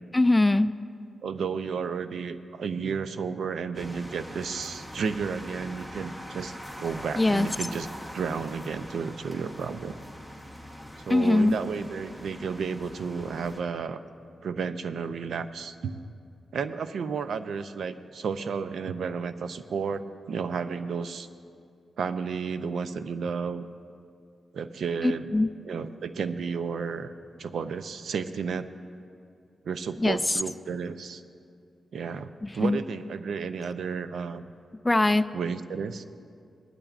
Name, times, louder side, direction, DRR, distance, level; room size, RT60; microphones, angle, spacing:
voice 1, 0.1-0.7 7.2-7.5 11.1-11.6 25.0-25.5 30.0-30.4 32.4-32.8 34.8-35.3, left 2 dB, 15° left, 13 dB, 0.3 m, -22 dB
voice 2, 1.2-7.9 8.1-10.0 11.1-14.0 14.4-16.0 16.5-21.3 22.0-23.6 24.5-25.3 25.6-27.1 27.4-28.7 29.6-31.2 31.9-34.4 35.3-36.1, right 5 dB, 80° right, 11 dB, 0.5 m, -32 dB
sound 1, 3.7-13.6, equal, 15° right, 1.1 m, -43 dB
19.0 x 12.0 x 2.5 m, 2.4 s
cardioid pair, 85°, 0 cm